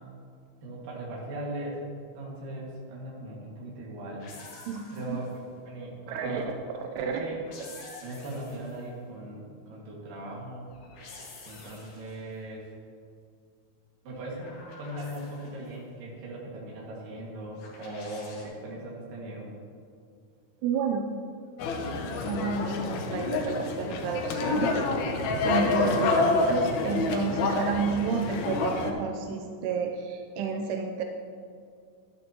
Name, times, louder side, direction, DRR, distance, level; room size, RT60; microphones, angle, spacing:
voice 1, 0.6-1.8 2.1-4.3 4.9-5.3 5.7-6.5 7.0-7.5 8.0-10.7 11.5-12.7 14.0-19.5, right 1 dB, 60° right, -3 dB, 3.6 m, -39 dB
sound 1, 4.2-5.5 7.2-8.9 10.7-12.3 14.1-15.7 17.6-18.4, left 3 dB, 65° left, 3.6 m, -48 dB
voice 2, 4.7-5.2 6.1-7.3 20.6-21.6 22.1-24.7 25.4-31.0, right 5 dB, 90° right, 4 dB, 2.7 m, -31 dB
sound 2, 21.6-28.9, left 3 dB, 85° left, 1.6 m, -28 dB
12.5 x 11.5 x 3.0 m, 2.3 s
omnidirectional pair, 4.5 m